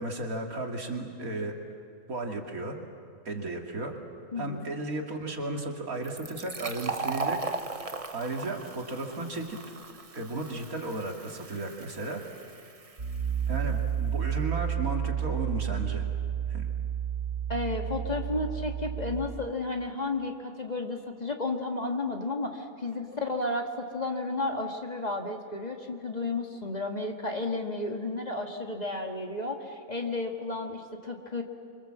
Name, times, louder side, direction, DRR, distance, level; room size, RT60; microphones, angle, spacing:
voice 1, 0.0-1.5 2.1-2.8 3.2-3.9 4.4-7.4 8.1-9.6 10.1-12.2 13.5-16.1 16.5-16.7, right 2 dB, 80° right, 2 dB, 2.8 m, -34 dB
voice 2, 4.3-4.7 17.5-31.4, left 2 dB, 30° left, 2 dB, 1.8 m, -32 dB
Fill (with liquid), 6.0-13.4, right 3 dB, 30° right, 1.0 m, -38 dB
Piano, 13.0-19.3, right 9 dB, 55° right, 2.8 m, -31 dB
27.0 x 24.0 x 7.6 m, 2.4 s
omnidirectional pair, 1.5 m